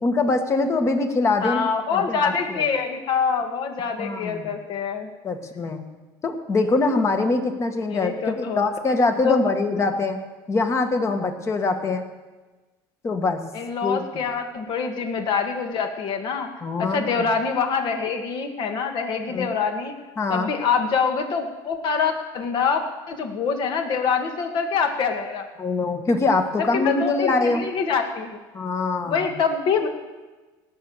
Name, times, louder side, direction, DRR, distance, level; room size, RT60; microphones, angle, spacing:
voice 1, 0.0-2.6 4.0-4.5 5.2-5.8 6.2-10.2 10.5-12.0 13.0-13.4 13.8-14.2 16.6-17.3 19.3-19.5 20.2-20.5 25.6-27.6 28.5-29.3, left 3 dB, 30° left, 6 dB, 1.7 m, -23 dB
voice 2, 1.4-5.1 7.9-8.6 9.2-9.4 13.5-16.5 16.8-19.9 20.3-25.5 26.6-28.4 29.0-29.9, left 5 dB, 55° left, 5 dB, 2.1 m, -25 dB
18.0 x 6.8 x 7.4 m, 1.2 s
cardioid pair, 120°, 10 cm